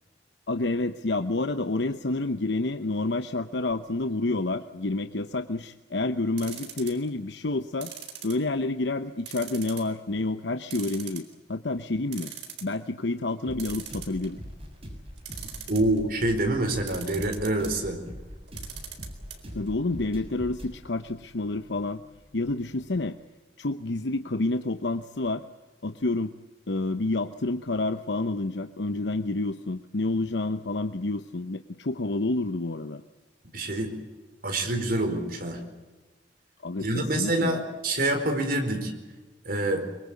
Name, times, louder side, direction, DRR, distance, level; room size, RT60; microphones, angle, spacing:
voice 1, 0.5-7.9 8.2-12.3 12.6-14.4 19.5-22.0 22.3-23.2 23.6-25.4 25.8-26.3 26.7-33.0 36.6-37.7, left 2 dB, 75° left, 9 dB, 0.9 m, -29 dB
sound 1, 6.4-7.1 7.8-8.8 9.2-9.9 10.3-10.4 10.7-11.5 11.9-12.0 12.1-12.7 13.6-14.5 15.2-16.0 16.9-17.7 18.5-19.4 19.7-19.8 20.0-20.1, right 10 dB, 75° right, 4.1 m, -40 dB
sound 2, 13.4-23.1, equal, 35° right, 6.4 m, -43 dB
voice 2, 15.7-18.0 33.5-33.9 34.4-35.6 36.8-38.9 39.4-39.9, right 1 dB, 55° right, 5 dB, 4.5 m, -26 dB
23.5 x 23.5 x 8.4 m, 1.2 s
head